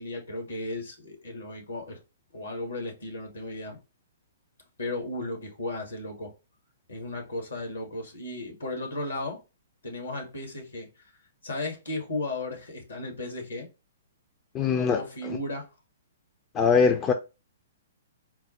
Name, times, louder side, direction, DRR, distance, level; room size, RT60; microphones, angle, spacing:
voice 1, 0.0-2.0 2.3-3.8 4.8-6.3 6.9-9.4 9.8-10.9 11.4-13.7 14.8-15.7, left 2 dB, 70° left, 1.5 m, -35 dB
voice 2, 14.5-15.0 16.5-17.1, left 6 dB, 20° left, 0.4 m, -21 dB
4.4 x 2.1 x 4.2 m
figure-of-eight pair, 115°, 0 cm